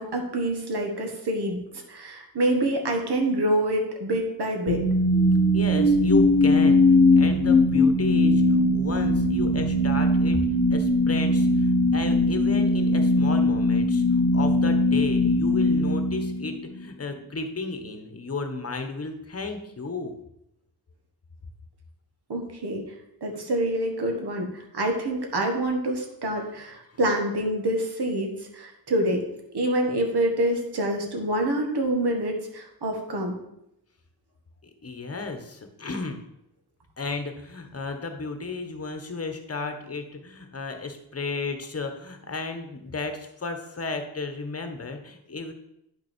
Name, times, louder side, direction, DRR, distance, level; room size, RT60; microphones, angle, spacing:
voice 1, 0.0-1.6 1.9-4.8 22.3-22.8 23.2-29.2 29.5-33.4, right 1 dB, 90° right, 2 dB, 1.7 m, -26 dB
sound 1, 4.7-16.8, left 1 dB, 75° left, 1.0 m, -20 dB
voice 2, 5.5-6.8 7.2-10.4 10.7-20.1 34.8-36.2 37.0-45.5, left 3 dB, 40° left, 7 dB, 1.2 m, -33 dB
9.8 x 6.0 x 4.5 m, 0.80 s
wide cardioid pair, 105°, 38 cm